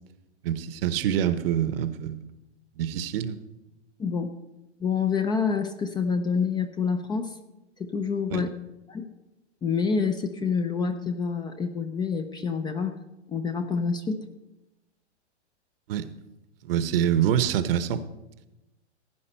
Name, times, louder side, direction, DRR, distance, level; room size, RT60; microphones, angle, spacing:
voice 1, 0.4-2.2 2.8-3.4 8.3-8.4 15.9-16.1 16.6-18.0, right 10 dB, 55° right, 13 dB, 1.0 m, -25 dB
voice 2, 4.8-7.3 7.8-8.5 8.9-9.0 9.6-13.0 13.3-14.2, left 5 dB, 15° left, 8 dB, 0.5 m, -27 dB
16.5 x 9.6 x 4.4 m, 0.99 s
hypercardioid pair, 125°, 35 cm